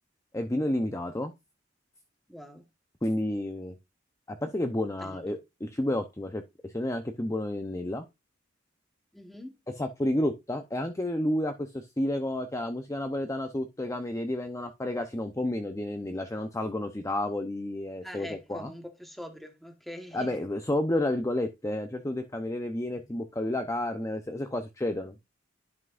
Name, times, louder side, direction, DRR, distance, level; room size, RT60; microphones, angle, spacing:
voice 1, 0.3-1.3 3.0-3.8 4.3-8.0 9.8-18.7 20.1-25.2, left 1 dB, 15° left, 0.7 m, -31 dB
voice 2, 2.3-2.7 5.0-5.2 9.1-9.5 18.0-20.4, equal, ahead, 1.4 m, -43 dB
11.0 x 5.9 x 2.5 m
head